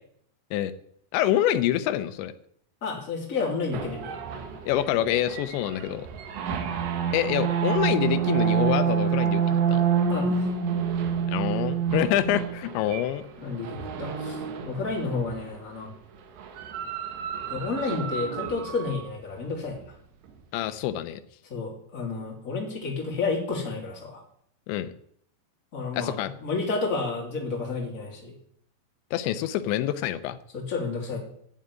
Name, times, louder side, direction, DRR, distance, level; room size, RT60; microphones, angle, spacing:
voice 1, 1.1-2.3 4.7-6.1 7.1-9.8 11.3-13.2 20.5-21.2 24.7-24.9 25.9-26.3 29.1-30.4, left 12 dB, 85° left, 11 dB, 3.0 m, -26 dB
voice 2, 2.8-4.1 10.1-10.5 13.4-14.4 14.6-15.9 17.5-19.8 21.5-24.2 25.7-28.3 30.5-31.2, left 4 dB, 20° left, -1 dB, 2.8 m, -31 dB
sound 1, 3.7-15.5 16.4-19.0, right 7 dB, 75° right, 3.7 m, -28 dB
11.5 x 7.5 x 9.6 m, 0.67 s
omnidirectional pair, 5.1 m